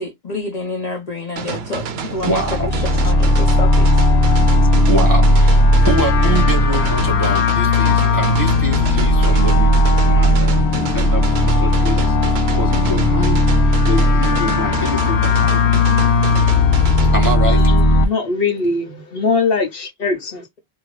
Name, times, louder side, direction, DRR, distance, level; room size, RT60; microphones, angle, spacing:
voice 1, 0.0-3.9, left 3 dB, 40° left, 0.8 m, -28 dB
sound 1, 1.4-17.4, right 5 dB, 75° right, 0.8 m, -28 dB
sound 2, 2.2-18.0, left 2 dB, 85° left, 0.9 m, -15 dB
voice 2, 2.2-2.7 3.0-3.1 4.9-9.7 10.0-12.2 12.5-15.7 17.1-17.6, right 1 dB, 20° right, 1.0 m, -25 dB
voice 3, 17.5-20.4, left 4 dB, 60° left, 1.1 m, -21 dB
2.9 x 2.7 x 3.1 m
omnidirectional pair, 1.1 m